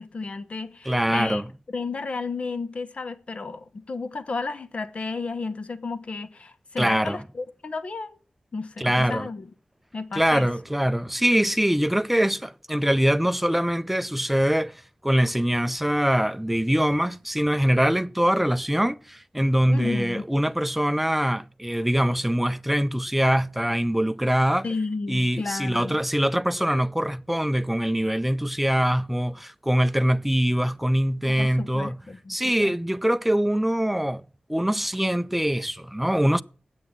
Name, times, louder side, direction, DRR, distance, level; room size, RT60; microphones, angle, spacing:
voice 1, 0.0-1.4 1.7-8.2 8.5-9.5 9.9-10.5 19.7-20.3 24.6-26.0 31.3-32.8, left 4 dB, 55° left, 1.0 m, -32 dB
voice 2, 0.9-1.4 6.8-7.2 8.8-9.3 10.1-24.7 25.1-32.0 32.3-34.2 34.5-36.4, equal, 5° right, 0.5 m, -23 dB
9.1 x 8.4 x 9.6 m
wide cardioid pair, 65°, 2 cm